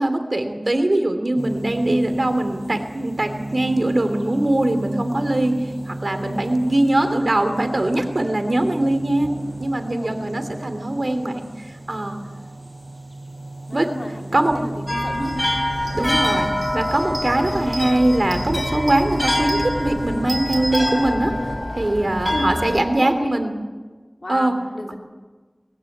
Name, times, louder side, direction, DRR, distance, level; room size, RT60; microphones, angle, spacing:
voice 1, 0.0-9.3 9.6-12.2 13.7-13.9 14.3-14.6 15.2-15.4 15.9-21.3 21.7-23.5 24.3-24.5, right 1 dB, 70° right, 7 dB, 3.0 m, -21 dB
sound 1, 1.4-21.1, right 2 dB, 35° right, 7.9 m, -35 dB
voice 2, 9.8-10.2 13.7-15.3 21.4-21.6 22.3-23.3 24.2-25.0, left 1 dB, 80° left, 1 dB, 3.3 m, -33 dB
sound 2, 14.9-22.8, left 1 dB, 40° left, 3.9 m, -25 dB
sound 3, 15.2-15.4 15.7-21.6, right 1 dB, 55° right, 4.4 m, -34 dB
21.5 x 15.5 x 9.5 m, 1.3 s
wide cardioid pair, 45°, 0 cm